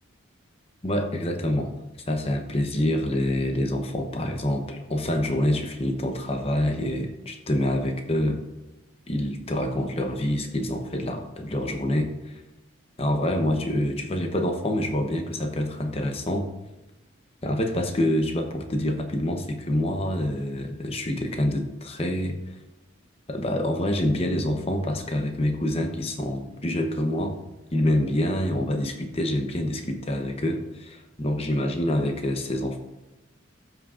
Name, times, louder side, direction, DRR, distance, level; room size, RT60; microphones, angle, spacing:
voice 1, 0.8-1.7 2.1-8.4 9.1-12.4 13.0-16.5 17.4-22.6 23.3-27.4 27.7-32.8, left 1 dB, 30° left, 4 dB, 0.8 m, -26 dB
14.0 x 6.0 x 2.5 m, 0.99 s
head